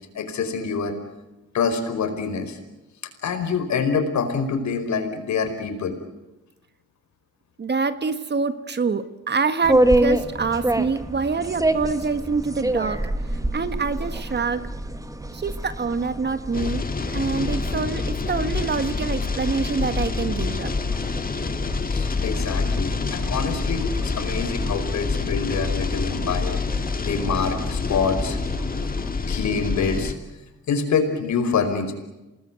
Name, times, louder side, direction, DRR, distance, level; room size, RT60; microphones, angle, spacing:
voice 1, 0.1-0.9 1.5-2.6 3.2-6.0 21.9-28.4 29.3-30.1 30.7-31.9, left 5 dB, 65° left, 7 dB, 5.1 m, -26 dB
voice 2, 7.6-13.0 13.5-14.7 15.3-20.7, right 4 dB, 35° right, 12 dB, 1.6 m, -26 dB
sound 1, 9.6-29.1, right 1 dB, 10° right, 1.9 m, -28 dB
sound 2, 16.5-30.1, left 4 dB, 30° left, 2.1 m, -27 dB
27.5 x 20.0 x 9.4 m, 1.0 s
cardioid pair, 90°, 30 cm